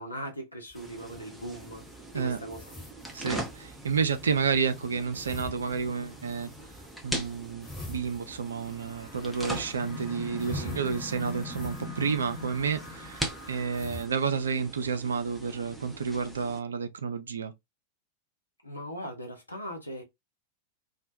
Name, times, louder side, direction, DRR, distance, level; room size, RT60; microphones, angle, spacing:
voice 1, 0.0-2.7 10.5-10.9 18.6-20.0, equal, 85° left, 0.7 m, -40 dB
sound 1, 0.6-14.0, left 2 dB, 15° left, 1.3 m, -47 dB
sound 2, 0.7-16.6, right 1 dB, 5° right, 0.6 m, -41 dB
voice 2, 3.1-6.5 7.0-13.2 13.5-17.5, right 5 dB, 70° right, 0.3 m, -30 dB
sound 3, 7.9-14.9, left 1 dB, 50° left, 0.8 m, -51 dB
2.1 x 2.1 x 2.7 m
figure-of-eight pair, 90°, 0 cm